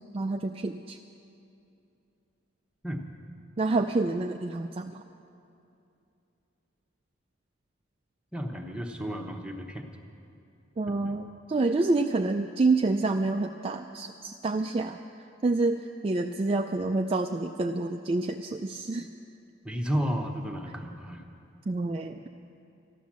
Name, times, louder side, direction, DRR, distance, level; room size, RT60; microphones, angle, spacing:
voice 1, 0.1-1.0 3.6-5.0 10.8-15.0 15.4-19.1 21.7-22.2, right 3 dB, 30° right, 4 dB, 0.3 m, -28 dB
voice 2, 8.3-9.9 10.9-11.1 19.6-21.2, equal, 5° right, 2 dB, 0.9 m, -32 dB
13.5 x 11.5 x 7.3 m, 2.7 s
head